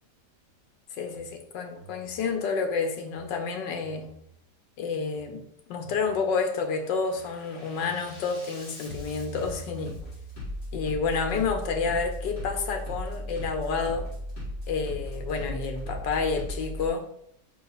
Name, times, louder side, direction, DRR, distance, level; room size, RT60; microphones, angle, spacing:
voice 1, 0.9-4.1 4.8-5.4 5.7-10.0 10.7-14.0 14.7-17.0, left 5 dB, 85° left, 5 dB, 1.6 m, -29 dB
Bass drum, 1.0-1.3 1.8-2.2 3.0-3.3 3.8-4.2 5.0-5.3 5.8-6.3 6.7-16.9, equal, 50° left, 3.3 m, -38 dB
5.6 x 4.8 x 4.1 m, 0.73 s
omnidirectional pair, 1.9 m